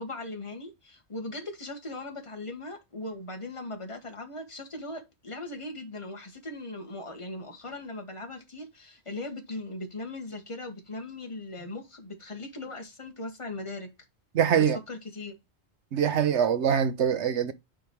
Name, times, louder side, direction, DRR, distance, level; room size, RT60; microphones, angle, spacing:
voice 1, 0.0-13.9 14.5-15.3, left 2 dB, 30° left, 1.6 m, -39 dB
voice 2, 14.3-14.8 15.9-17.5, right 8 dB, 90° right, 1.1 m, -24 dB
9.2 x 3.6 x 4.6 m
omnidirectional pair, 1.1 m